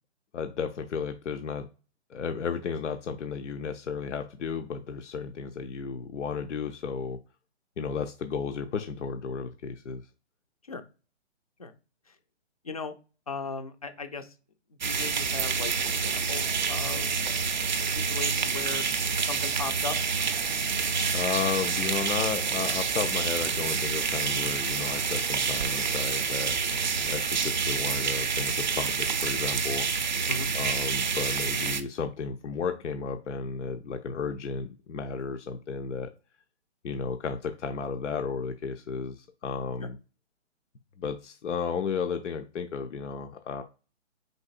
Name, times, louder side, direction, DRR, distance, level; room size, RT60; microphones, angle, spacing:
voice 1, 0.3-1.7 2.1-7.2 7.8-10.1 21.1-29.9 30.5-36.1 36.8-40.0 41.0-43.6, left 6 dB, 90° left, 6 dB, 0.6 m, -33 dB
voice 2, 13.3-14.3 14.8-17.1 17.5-18.9 19.3-20.0 30.3-30.5 39.8-39.9, left 4 dB, 35° left, 8 dB, 0.4 m, -37 dB
sound 1, 14.8-31.8, right 5 dB, 40° right, 0.4 m, -28 dB
4.6 x 4.0 x 2.4 m, 0.34 s
hypercardioid pair, 165°, 35 cm